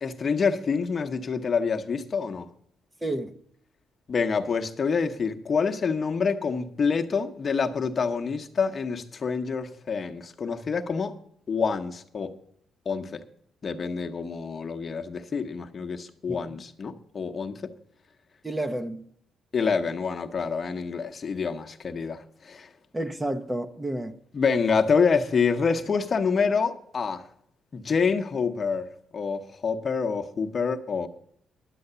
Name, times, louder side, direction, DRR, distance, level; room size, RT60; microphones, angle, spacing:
voice 1, 0.0-2.5 4.1-11.2 11.5-12.3 12.9-13.2 13.6-17.7 19.5-22.7 24.3-27.2 27.7-28.9 29.1-31.1, left 5 dB, 40° left, 0.9 m, -27 dB
voice 2, 3.0-3.3 16.3-16.6 18.4-19.1 22.9-24.2, right 1 dB, 15° right, 0.8 m, -31 dB
11.0 x 7.8 x 6.8 m
cardioid pair, 90°, 0 cm